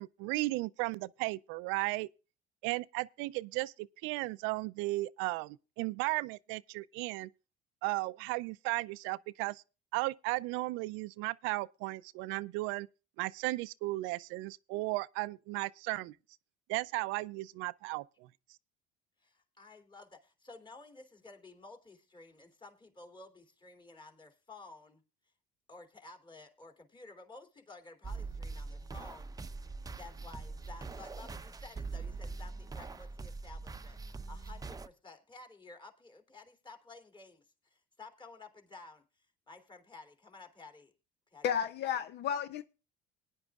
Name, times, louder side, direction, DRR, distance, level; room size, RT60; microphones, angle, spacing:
voice 1, 0.0-2.1 2.6-7.3 7.8-9.6 9.9-12.9 13.2-16.1 16.7-18.3, right 21 dB, 75° right, 0.5 m, -35 dB
voice 2, 19.2-25.0 25.7-29.3 29.9-34.0 34.3-40.9 41.3-41.5, left 3 dB, 25° left, 2.9 m, -53 dB
sound 1, 28.0-34.9, right 4 dB, 20° right, 0.7 m, -43 dB
voice 3, 41.4-42.6, left 8 dB, 55° left, 0.7 m, -32 dB
20.0 x 10.5 x 2.4 m
supercardioid pair, 85°, 20 cm